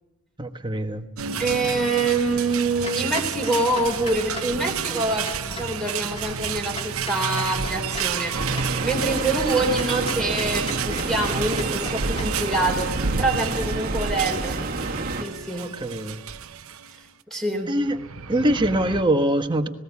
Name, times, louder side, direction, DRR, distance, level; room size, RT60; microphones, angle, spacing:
voice 1, 0.4-1.0 15.6-16.2 17.7-18.0 18.3-19.7, right 1 dB, 20° right, 6 dB, 1.3 m, -23 dB
sound 1, 1.2-17.0 17.8-19.0, right 6 dB, 90° right, 0.9 m, -30 dB
voice 2, 1.4-8.4 8.8-12.9 13.2-14.6 15.2-15.7 17.3-17.7, right 2 dB, ahead, 1 dB, 3.8 m, -25 dB
Clock, 2.8-12.4, left 2 dB, 30° left, 3.4 m, -39 dB
sound 2, 8.3-15.2, right 2 dB, 45° right, 1.7 m, -30 dB
19.0 x 17.5 x 8.5 m, 1.0 s
head